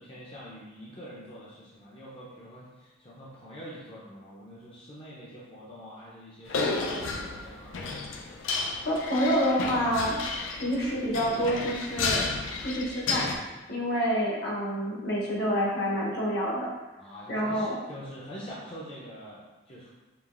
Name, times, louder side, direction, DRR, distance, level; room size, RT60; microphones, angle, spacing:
voice 1, 0.0-7.7 17.0-19.9, equal, 30° left, -7 dB, 0.5 m, -45 dB
sound 1, 6.5-13.4, left 3 dB, 75° left, 0.4 m, -32 dB
voice 2, 8.8-10.2 10.6-12.2 12.6-13.3 13.7-16.7 17.3-17.7, equal, 55° left, -3 dB, 0.9 m, -27 dB
4.9 x 2.9 x 2.4 m, 1.2 s
head